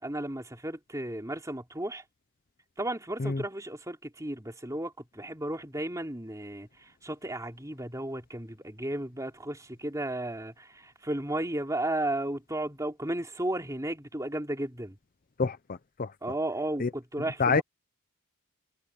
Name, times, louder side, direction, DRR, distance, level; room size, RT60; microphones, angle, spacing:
voice 1, 0.0-2.0 2.8-15.0 16.2-17.6, right 1 dB, 15° right, 3.3 m, -34 dB
voice 2, 15.4-16.1 16.8-16.9 17.4-17.6, left 4 dB, 40° left, 0.6 m, -27 dB
head